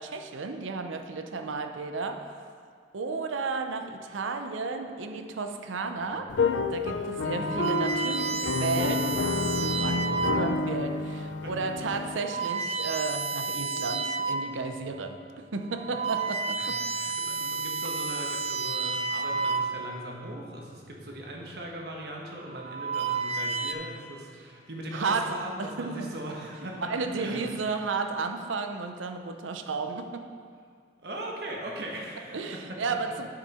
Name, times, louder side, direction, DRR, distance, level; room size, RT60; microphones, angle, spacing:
voice 1, 0.0-2.4 2.9-6.3 6.7-16.8 24.9-26.1 26.6-30.3 32.3-33.3, right 4 dB, 85° right, 6 dB, 0.6 m, -33 dB
sound 1, 6.3-12.2, left 3 dB, 70° left, 0.4 m, -29 dB
sound 2, 6.4-6.6 7.3-10.7 11.3-11.6 12.1-14.6 15.0-15.1 15.7-20.1 21.1-21.5 22.4-23.7, right 4 dB, 35° right, 0.3 m, -31 dB
voice 2, 7.2-7.6 11.4-11.5 12.4-12.5 16.6-26.9 27.2-27.4 31.0-32.8, right 1 dB, 55° right, -1 dB, 1.3 m, -39 dB
9.9 x 6.5 x 4.3 m, 2.1 s
head